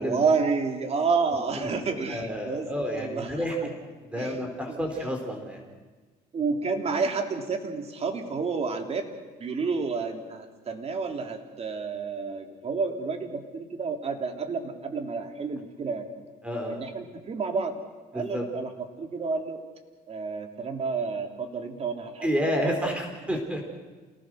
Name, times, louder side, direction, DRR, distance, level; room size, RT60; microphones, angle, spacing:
voice 1, 0.0-2.7 2.9-3.7 4.1-4.4 4.7-4.8 6.3-9.1 9.4-16.1 16.7-17.7 18.1-18.7 19.0-19.6 20.1-23.0, right 4 dB, 40° right, 4 dB, 3.2 m, -30 dB
voice 2, 2.1-3.5 4.0-5.6 16.4-16.8 18.1-18.4 22.2-23.6, equal, 5° right, 2 dB, 4.5 m, -30 dB
28.5 x 19.0 x 6.5 m, 1.4 s
cardioid pair, 110°, 17 cm